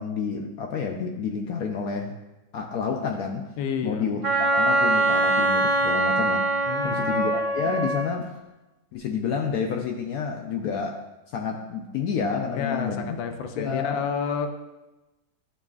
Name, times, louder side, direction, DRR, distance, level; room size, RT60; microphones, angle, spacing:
voice 1, 0.0-2.1 2.5-3.4 3.8-8.3 8.9-11.0 11.3-13.2 13.6-14.0, left 6 dB, 75° left, 2 dB, 0.9 m, -29 dB
voice 2, 3.6-4.5 6.7-7.2 12.5-14.5, left 6 dB, 90° left, 6 dB, 1.3 m, -30 dB
Wind instrument woodwind instrument, 4.2-8.1, right 2 dB, 55° right, 0.3 m, -23 dB
11.0 x 4.0 x 2.4 m, 1.0 s
omnidirectional pair, 2.0 m